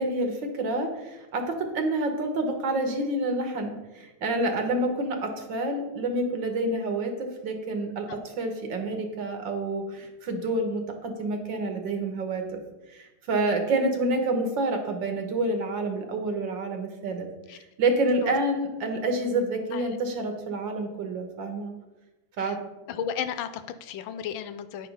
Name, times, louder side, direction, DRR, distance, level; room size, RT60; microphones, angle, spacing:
voice 1, 0.0-12.4 12.9-17.3 17.5-21.7 22.4-22.6, right 2 dB, 70° right, 5 dB, 1.9 m, -28 dB
voice 2, 22.9-24.9, left 8 dB, 85° left, 11 dB, 1.4 m, -34 dB
9.8 x 5.0 x 5.5 m, 1.1 s
omnidirectional pair, 2.1 m